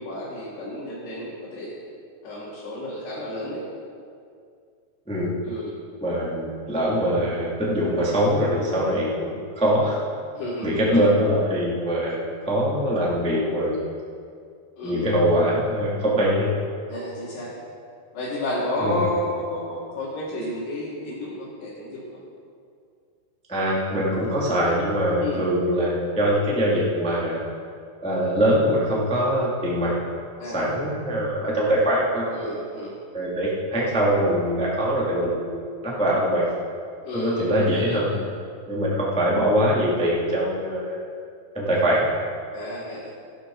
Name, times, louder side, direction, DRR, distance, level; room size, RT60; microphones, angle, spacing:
voice 1, 0.0-1.7 2.2-3.6 5.4-5.7 10.3-11.0 14.8-15.1 16.9-17.5 18.1-22.1 25.2-25.4 30.4-30.6 32.3-33.0 37.0-38.3 42.5-43.1, left 1 dB, 70° left, -9 dB, 4.4 m, -31 dB
voice 2, 6.0-10.0 10.6-13.8 14.8-16.5 18.8-19.1 23.5-27.4 28.0-29.9 30.4-32.2 33.1-36.4 37.1-38.2 38.7-41.0 41.5-42.0, equal, 5° left, -6 dB, 0.4 m, -23 dB
16.0 x 11.5 x 3.9 m, 2.3 s
omnidirectional pair, 4.9 m